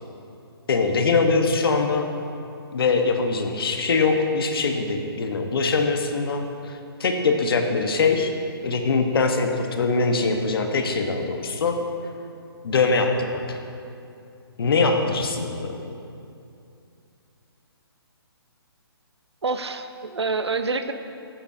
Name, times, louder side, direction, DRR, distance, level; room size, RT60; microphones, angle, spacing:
voice 1, 0.7-2.1 2.7-8.3 8.6-11.8 12.6-13.6 14.6-15.9, left 4 dB, 60° left, 4 dB, 1.2 m, -22 dB
voice 2, 19.4-20.9, right 4 dB, 85° right, 10 dB, 0.7 m, -27 dB
14.0 x 10.0 x 2.8 m, 2.6 s
hypercardioid pair, 145°, 14 cm